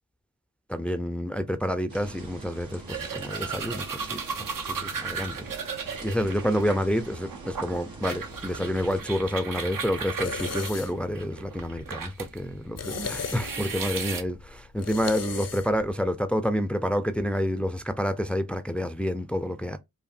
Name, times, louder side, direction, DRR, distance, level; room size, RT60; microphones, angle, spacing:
voice 1, 0.7-4.2 4.6-5.5 6.0-19.8, equal, 5° left, 0.5 m, -28 dB
sound 1, 1.9-9.0, right 2 dB, 80° right, 1.3 m, -44 dB
sound 2, 2.9-12.4 12.8-14.2, right 5 dB, 65° right, 0.9 m, -35 dB
sound 3, 8.3-15.9, left 6 dB, 45° left, 0.6 m, -39 dB
4.9 x 2.6 x 2.6 m
cardioid pair, 45°, 35 cm